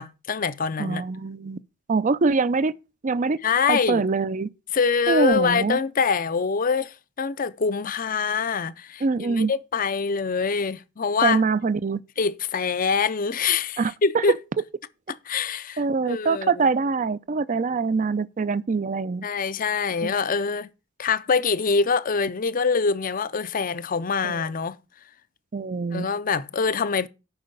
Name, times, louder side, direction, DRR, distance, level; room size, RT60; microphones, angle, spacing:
voice 1, 0.0-1.0 3.4-4.1 4.7-11.4 12.2-14.3 15.3-15.8 16.1-16.7 19.2-20.7 21.0-24.8 25.9-27.1, left 5 dB, 45° left, 0.6 m, -24 dB
voice 2, 0.8-1.6 1.9-2.7 3.0-3.4 3.7-4.5 5.1-5.8 9.0-9.5 11.2-12.0 13.8-14.2 15.8-19.3 20.0-20.2 24.2-24.4 25.5-26.1, right 4 dB, 40° right, 0.5 m, -24 dB
9.0 x 5.6 x 6.6 m
head